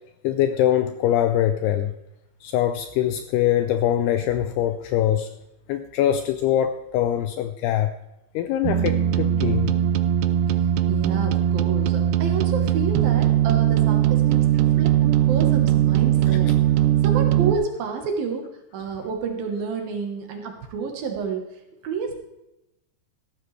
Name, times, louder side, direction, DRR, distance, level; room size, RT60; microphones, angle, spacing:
voice 1, 0.2-1.9 2.4-5.3 5.7-7.9 8.3-9.8, left 11 dB, 85° left, 9 dB, 2.3 m, -23 dB
sound 1, 8.6-17.5, right 11 dB, 80° right, 2.4 m, -20 dB
voice 2, 10.9-16.5 17.0-18.5 18.7-21.4 21.8-22.1, right 5 dB, 65° right, 3 dB, 2.6 m, -30 dB
15.0 x 12.5 x 3.3 m, 0.89 s
omnidirectional pair, 5.3 m